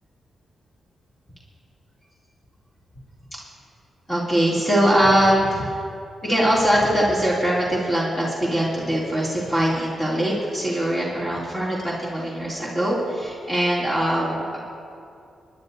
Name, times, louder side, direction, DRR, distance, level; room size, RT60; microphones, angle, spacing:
voice 1, 4.1-5.6 6.2-14.6, equal, 20° left, -7 dB, 2.8 m, -22 dB
24.5 x 10.0 x 2.7 m, 2.5 s
cardioid pair, 60°, 0 cm